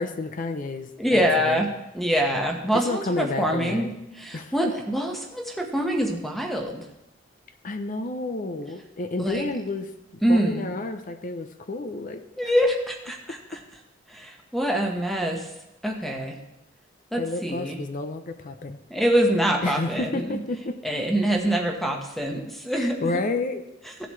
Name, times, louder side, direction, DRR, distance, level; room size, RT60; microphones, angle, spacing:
voice 1, 0.0-1.6 2.7-4.0 4.3-4.5 7.6-12.3 17.2-18.8 19.6-20.8 22.7-23.6, left 2 dB, 45° left, 8 dB, 0.6 m, -30 dB
voice 2, 1.0-1.7 1.9-3.9 4.2-6.8 9.2-9.5 10.2-10.7 12.4-13.4 14.1-15.4 15.8-16.4 17.1-17.8 18.9-20.4 20.8-23.1, equal, ahead, 2 dB, 1.2 m, -25 dB
15.5 x 7.9 x 3.2 m, 0.90 s
head